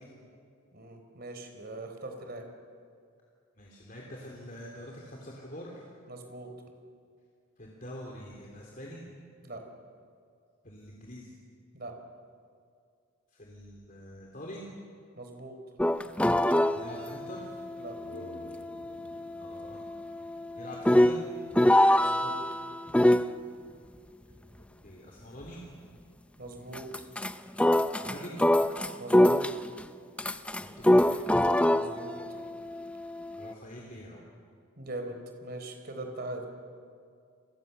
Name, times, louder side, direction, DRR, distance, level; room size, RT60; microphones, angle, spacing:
voice 1, 0.7-2.4 6.1-6.5 9.4-9.6 11.7-12.0 15.2-15.6 17.8-18.0 21.9-22.4 26.4-26.9 29.0-29.5 31.7-32.2 34.8-36.5, right 2 dB, 45° right, 5 dB, 4.1 m, -41 dB
voice 2, 3.6-5.8 7.6-9.0 10.6-11.3 13.3-14.6 16.7-17.5 19.4-19.8 20.6-21.3 24.8-25.6 28.0-28.4 30.6-31.1 33.4-34.2, equal, 40° left, -2 dB, 3.3 m, -44 dB
sound 1, 15.8-23.3 26.7-27.3 27.6-29.8 30.2-33.5, left 1 dB, 5° left, 0.5 m, -25 dB
sound 2, 17.8-21.4, left 1 dB, 80° left, 2.8 m, -51 dB
30.0 x 24.0 x 6.9 m, 2.3 s
head